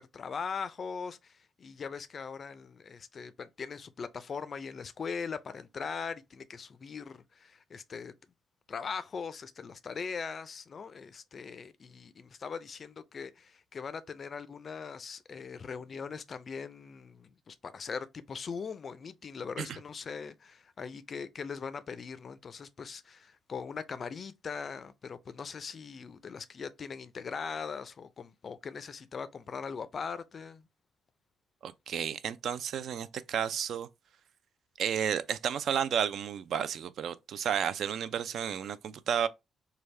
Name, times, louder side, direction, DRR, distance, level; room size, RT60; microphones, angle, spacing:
voice 1, 0.0-1.3 1.6-8.1 8.7-30.7, left 5 dB, 40° left, 0.3 m, -40 dB
voice 2, 31.6-33.9 34.8-39.3, right 8 dB, 65° right, 0.3 m, -32 dB
3.3 x 2.3 x 3.2 m
cardioid pair, 120°, 0 cm